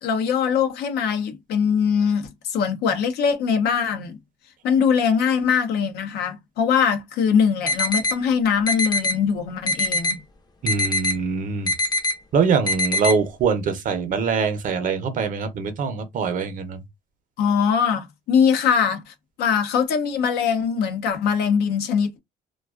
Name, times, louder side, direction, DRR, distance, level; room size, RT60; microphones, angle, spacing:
voice 1, 0.0-4.2 4.6-10.2 17.4-22.2, left 7 dB, 75° left, 0.6 m, -22 dB
sound 1, 7.7-8.1 8.7-9.1 9.7-10.1 10.7-11.1 11.7-12.1 12.7-13.1, left 2 dB, 25° left, 0.6 m, -22 dB
voice 2, 10.6-11.7 12.3-16.8, right 5 dB, 50° right, 0.6 m, -23 dB
2.4 x 2.3 x 2.3 m
cardioid pair, 110°, 17 cm